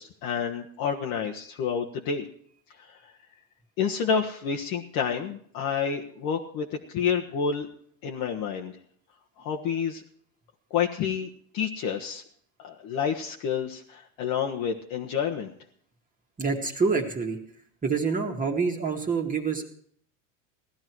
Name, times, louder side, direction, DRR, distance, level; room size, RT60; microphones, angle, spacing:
voice 1, 0.0-2.3 3.8-7.7 8.0-8.7 9.4-10.0 10.7-12.2 12.6-15.5, left 7 dB, 55° left, 1 dB, 1.5 m, -29 dB
voice 2, 16.4-17.4 17.8-19.6, right 5 dB, 20° right, 0 dB, 1.9 m, -26 dB
17.0 x 12.0 x 4.7 m, 0.62 s
supercardioid pair, 115°, 41 cm